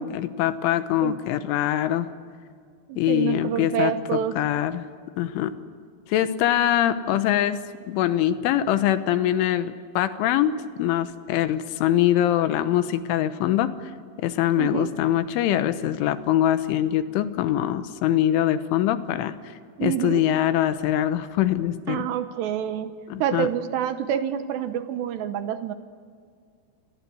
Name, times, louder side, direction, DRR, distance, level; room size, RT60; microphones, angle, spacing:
voice 1, 0.0-2.1 3.0-4.9 5.2-5.5 6.1-13.7 14.2-19.4 19.8-22.1 23.1-23.5, left 12 dB, 85° left, 11 dB, 3.5 m, -23 dB
voice 2, 2.9-4.4 14.6-14.9 19.8-20.3 21.9-22.9 23.2-25.7, right 10 dB, 75° right, 9 dB, 2.9 m, -27 dB
29.5 x 23.5 x 7.9 m, 2.1 s
omnidirectional pair, 5.5 m